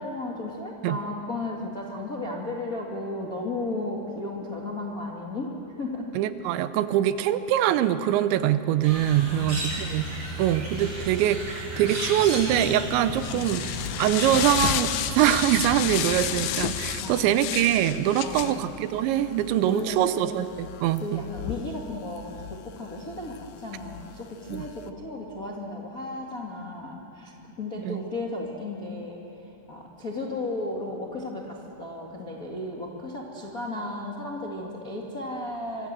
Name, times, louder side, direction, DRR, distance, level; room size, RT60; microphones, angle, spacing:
voice 1, 0.0-5.5 5.8-6.1 9.3-9.8 10.1-10.8 13.3-13.8 17.0-17.4 18.2-18.6 19.6-20.4 21.0-29.2 29.7-35.9, left 2 dB, 45° left, -2 dB, 1.1 m, -35 dB
voice 2, 6.2-10.1 10.4-13.6 14.0-21.2 24.5-24.7 27.8-28.1, right 11 dB, 80° right, 12 dB, 3.0 m, -24 dB
sound 1, 8.8-16.9, right 1 dB, 25° right, 5.9 m, -35 dB
sound 2, 12.5-24.9, left 12 dB, 85° left, 2.1 m, -33 dB
26.0 x 25.0 x 7.5 m, 2.9 s
omnidirectional pair, 5.3 m